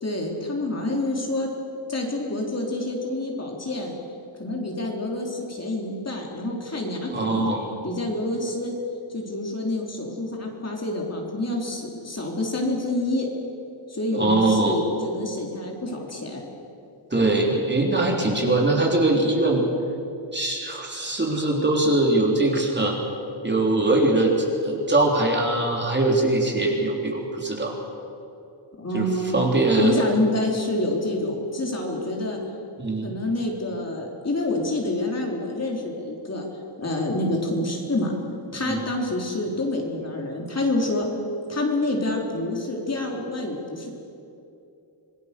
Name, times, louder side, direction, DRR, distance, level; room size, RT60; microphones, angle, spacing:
voice 1, 0.0-1.5 1.9-3.9 4.4-7.5 7.8-8.7 9.1-13.3 13.9-16.4 28.8-29.4 29.7-32.4 33.0-36.5 36.8-38.1 38.5-41.1 41.5-43.9, left 2 dB, 30° left, 0 dB, 3.8 m, -27 dB
voice 2, 7.1-7.6 14.1-14.8 17.1-19.6 20.3-23.0 23.4-27.8 28.9-29.0 29.3-30.0 32.8-33.1 38.6-38.8, right 2 dB, 20° right, 0 dB, 3.8 m, -22 dB
26.5 x 19.0 x 6.9 m, 2.7 s
wide cardioid pair, 105°, 48 cm